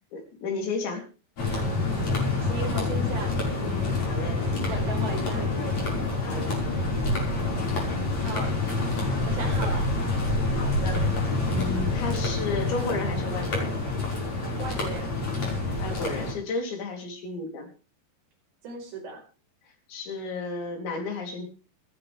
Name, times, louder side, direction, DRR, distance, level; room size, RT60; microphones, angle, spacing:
voice 1, 0.1-1.0 4.1-4.4 6.2-6.6 10.5-13.8 15.8-17.7 19.9-21.4, left 3 dB, 85° left, 3 dB, 5.9 m, -33 dB
sound 1, 1.4-16.3, left 2 dB, 40° left, 6.3 m, -27 dB
voice 2, 2.4-4.2 4.5-6.1 8.2-8.5 9.3-9.9 11.5-11.8 14.6-15.2 18.6-19.2, right 3 dB, 75° right, 1 dB, 7.1 m, -37 dB
27.0 x 10.0 x 3.5 m, 0.35 s
omnidirectional pair, 5.1 m